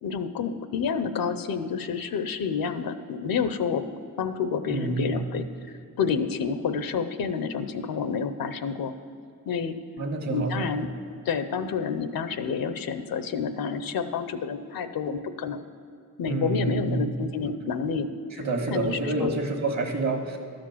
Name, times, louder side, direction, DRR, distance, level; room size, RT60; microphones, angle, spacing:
voice 1, 0.0-3.8 4.2-8.9 9.5-9.8 10.3-10.9 11.2-15.6 16.2-18.1 18.4-19.3, left 6 dB, 75° left, 11 dB, 0.7 m, -29 dB
voice 2, 4.7-5.2 10.0-10.7 16.3-17.1 18.4-20.4, right 3 dB, 50° right, 4 dB, 1.7 m, -28 dB
12.5 x 5.2 x 7.1 m, 2.3 s
cardioid pair, 60°, 35 cm